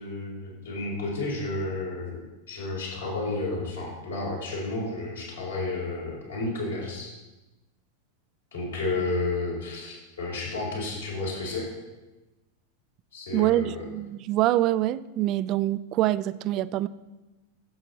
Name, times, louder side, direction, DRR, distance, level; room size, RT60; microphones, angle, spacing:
voice 1, 0.0-7.1 8.5-11.7 13.1-13.9, left 2 dB, 65° left, -3 dB, 3.7 m, -31 dB
voice 2, 13.3-16.9, right 14 dB, 40° right, 17 dB, 0.3 m, -25 dB
11.0 x 7.3 x 4.1 m, 1.1 s
figure-of-eight pair, 90°, 0 cm